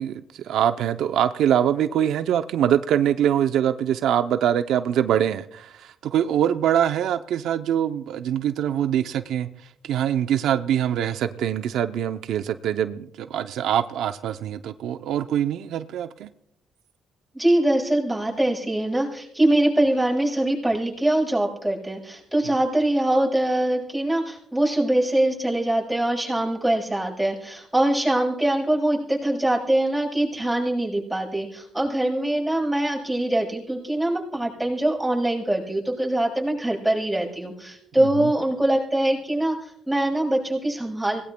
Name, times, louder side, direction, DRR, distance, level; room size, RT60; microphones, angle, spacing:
voice 1, 0.0-16.3 38.0-38.3, right 10 dB, 80° right, 10 dB, 0.5 m, -24 dB
voice 2, 17.3-41.2, right 1 dB, 5° right, -5 dB, 7.8 m, -23 dB
25.0 x 19.0 x 2.2 m, 0.78 s
cardioid pair, 90°, 0 cm